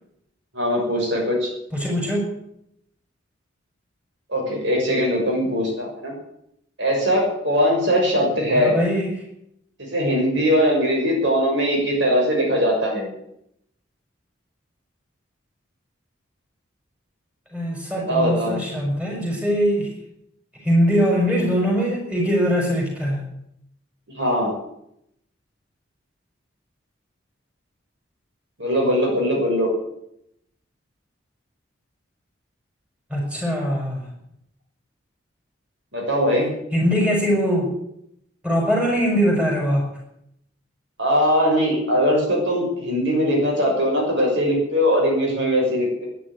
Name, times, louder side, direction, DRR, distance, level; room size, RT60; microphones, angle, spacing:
voice 1, 0.5-1.5 4.3-6.1 6.8-8.7 9.8-13.1 17.9-18.6 24.1-24.5 28.6-29.7 35.9-36.5 41.0-46.1, equal, 65° right, -1 dB, 6.6 m, -21 dB
voice 2, 1.7-2.3 8.5-9.1 17.5-19.9 20.6-23.2 33.1-34.0 36.7-37.7 38.4-39.8, equal, 5° right, -1 dB, 6.2 m, -21 dB
13.5 x 10.5 x 9.9 m, 0.76 s
head